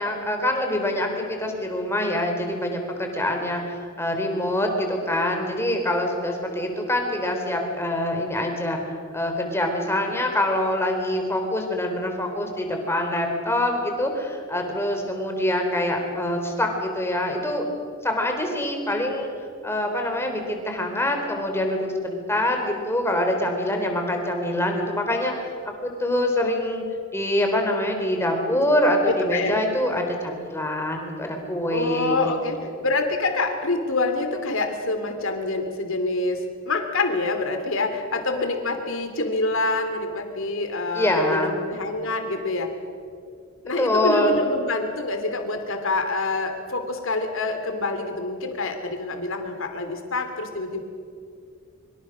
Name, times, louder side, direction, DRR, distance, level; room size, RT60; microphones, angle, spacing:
voice 1, 0.0-8.8 9.1-17.7 18.0-19.3 19.6-25.5 25.8-26.8 27.1-32.2 32.6-32.9 40.9-41.6 43.8-44.4, left 1 dB, 10° left, 3 dB, 3.7 m, -25 dB
voice 2, 29.1-29.6 31.7-42.7 43.6-50.8, left 3 dB, 65° left, 6 dB, 3.0 m, -26 dB
25.0 x 24.0 x 6.4 m, 2.3 s
head